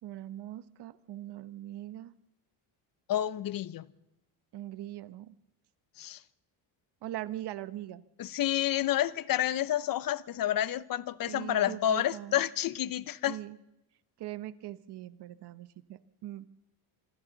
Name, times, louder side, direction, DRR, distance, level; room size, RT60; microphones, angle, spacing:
voice 1, 0.0-2.1 4.5-5.3 7.0-8.0 11.3-12.4 13.3-13.6 14.2-16.5, right 13 dB, 60° right, 1.1 m, -41 dB
voice 2, 3.1-3.9 6.0-6.2 8.2-13.4, left 12 dB, 45° left, 0.9 m, -29 dB
26.0 x 26.0 x 4.0 m
cardioid pair, 125°, 46 cm